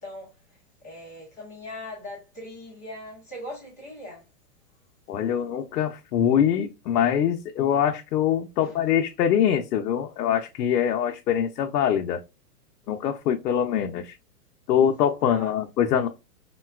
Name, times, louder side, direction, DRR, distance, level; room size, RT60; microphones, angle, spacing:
voice 1, 0.0-4.2 8.6-9.0 15.3-15.5, left 1 dB, 10° left, 0.4 m, -41 dB
voice 2, 5.1-12.2 12.9-14.2 14.7-16.1, left 9 dB, 80° left, 0.6 m, -23 dB
3.7 x 2.2 x 2.3 m
hypercardioid pair, 155°, 48 cm